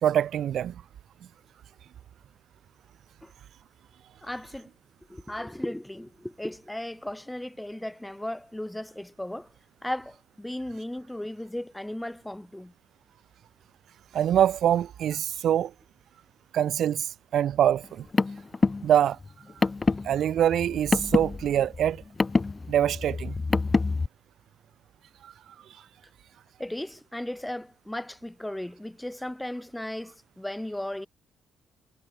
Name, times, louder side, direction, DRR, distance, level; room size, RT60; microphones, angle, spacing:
voice 1, 0.0-0.8 14.1-15.7 16.5-18.1 18.8-19.2 20.0-22.0 22.7-23.4 25.2-25.3, right 10 dB, 70° right, 0.4 m, -24 dB
voice 2, 4.2-4.7 5.1-9.5 9.8-12.7 26.6-31.1, left 1 dB, 5° left, 2.1 m, -36 dB
Car, 17.8-24.1, left 3 dB, 25° left, 3.2 m, -27 dB
cardioid pair, 90°, 0 cm